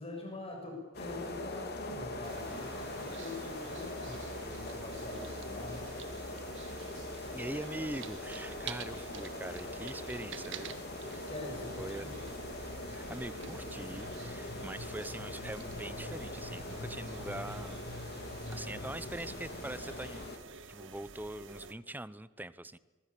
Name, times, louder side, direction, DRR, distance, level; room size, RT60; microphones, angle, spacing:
voice 1, 0.0-5.9 11.3-12.2, left 2 dB, 30° left, 1 dB, 6.7 m, -44 dB
sound 1, 0.9-20.4, left 2 dB, 55° left, 3.6 m, -42 dB
sound 2, 2.2-21.7, right 5 dB, 65° right, 1.7 m, -49 dB
sound 3, 3.6-20.1, left 1 dB, 75° left, 1.5 m, -51 dB
voice 2, 7.3-11.3 11.8-12.1 12.9-17.8 18.5-20.3 20.7-22.8, right 1 dB, 10° right, 16 dB, 0.8 m, -43 dB
25.0 x 21.0 x 8.5 m, 1.3 s
head